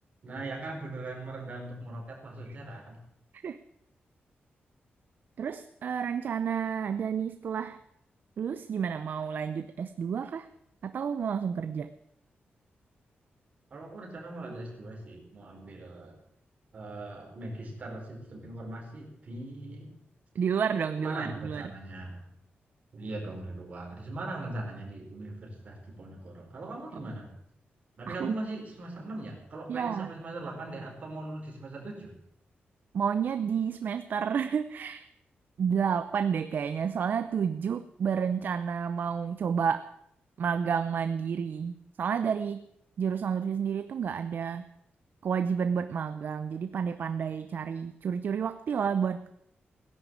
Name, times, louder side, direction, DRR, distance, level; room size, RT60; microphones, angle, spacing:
voice 1, 0.2-3.0 13.7-16.1 16.7-19.9 21.0-22.3 22.9-27.3 28.0-32.1, right 2 dB, 40° right, 0 dB, 4.8 m, -40 dB
voice 2, 5.4-7.8 8.4-10.5 10.8-11.9 20.3-21.7 28.1-28.3 29.7-30.1 32.9-35.1 35.6-39.9 40.4-42.6 43.0-44.7 45.2-49.3, right 7 dB, 55° right, 11 dB, 0.6 m, -30 dB
17.5 x 10.5 x 7.6 m, 0.75 s
wide cardioid pair, 180°, 4 cm